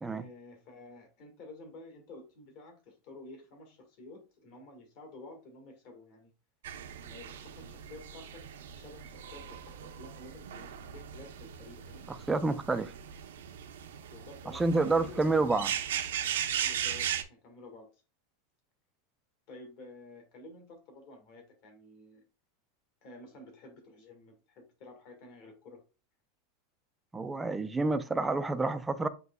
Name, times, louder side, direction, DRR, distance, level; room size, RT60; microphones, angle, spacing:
voice 1, 0.1-6.3 7.0-8.4 8.7-12.0 14.1-15.5 16.6-17.9 19.5-22.2 23.0-25.8, left 2 dB, 45° left, 1.6 m, -51 dB
sound 1, 6.6-17.2, right 9 dB, 90° right, 0.6 m, -38 dB
voice 2, 12.3-12.9 14.5-15.7 27.1-29.1, right 3 dB, 5° right, 0.3 m, -28 dB
7.9 x 2.9 x 2.2 m
supercardioid pair, 165°, 0 cm